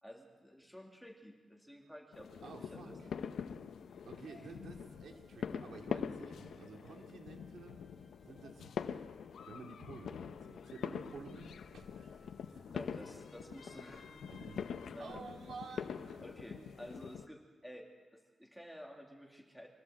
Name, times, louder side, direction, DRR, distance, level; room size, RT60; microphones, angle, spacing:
voice 1, 0.0-3.0 12.7-14.1 14.4-14.7 14.9-15.3 16.2-17.9 18.1-19.7, equal, ahead, 0 dB, 2.6 m, -52 dB
sound 1, 2.1-17.3, left 7 dB, 90° left, 0.8 m, -44 dB
voice 2, 2.4-3.1 4.0-7.8 8.2-8.9 9.5-12.3 14.3-16.2, right 4 dB, 75° right, 2 dB, 2.8 m, -51 dB
sound 2, 3.7-12.7, left 2 dB, 30° left, 3.9 m, -69 dB
Bowed string instrument, 12.5-16.7, right 2 dB, 40° right, 5.9 m, -62 dB
24.5 x 15.0 x 7.8 m, 1.4 s
wide cardioid pair, 170°, 0 cm